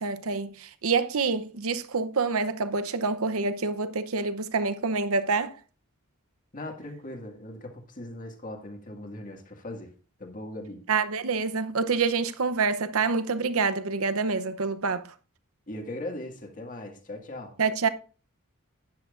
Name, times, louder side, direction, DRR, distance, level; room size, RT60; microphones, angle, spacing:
voice 1, 0.0-5.5 10.9-15.1 17.6-17.9, right 4 dB, 70° right, 0.8 m, -27 dB
voice 2, 6.5-9.9 10.2-10.8 15.7-17.5, left 1 dB, 35° left, 2.0 m, -39 dB
12.5 x 10.5 x 2.5 m
head